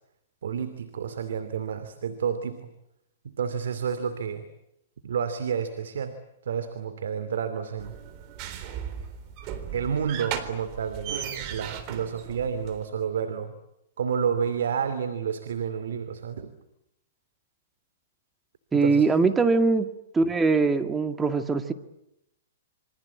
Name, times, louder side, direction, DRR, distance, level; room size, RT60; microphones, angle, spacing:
voice 1, 0.4-2.7 3.4-4.5 5.0-6.2 6.4-7.9 9.7-13.5 14.0-16.5 18.8-19.0, right 7 dB, 80° right, 12 dB, 2.7 m, -30 dB
sound 1, 7.8-12.9, right 8 dB, 40° right, 3.8 m, -36 dB
voice 2, 18.7-19.9 20.1-21.7, right 4 dB, 10° right, 9 dB, 2.1 m, -22 dB
28.0 x 25.0 x 8.5 m, 0.82 s
hypercardioid pair, 140°, 0 cm